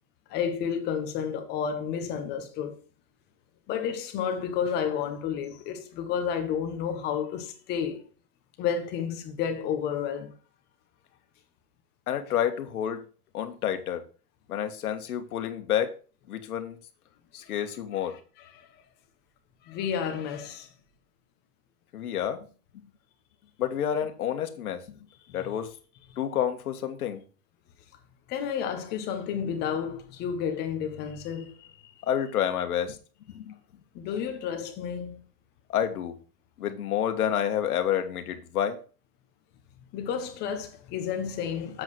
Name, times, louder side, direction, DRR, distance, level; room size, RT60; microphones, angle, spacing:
voice 1, 0.3-2.8 3.7-8.1 8.6-10.3 18.4-18.8 19.7-20.7 25.3-25.5 28.3-31.7 33.9-35.2 39.9-41.8, left 7 dB, 20° left, 1.1 m, -31 dB
voice 2, 12.1-13.0 13.3-14.0 14.5-15.9 16.3-16.8 17.3-18.2 21.9-22.4 23.6-24.8 25.3-25.7 26.2-27.2 32.0-33.0 33.3-33.5 35.7-36.2 36.6-38.8, left 9 dB, 70° left, 1.7 m, -29 dB
7.7 x 4.8 x 6.2 m
supercardioid pair, 160°, 46 cm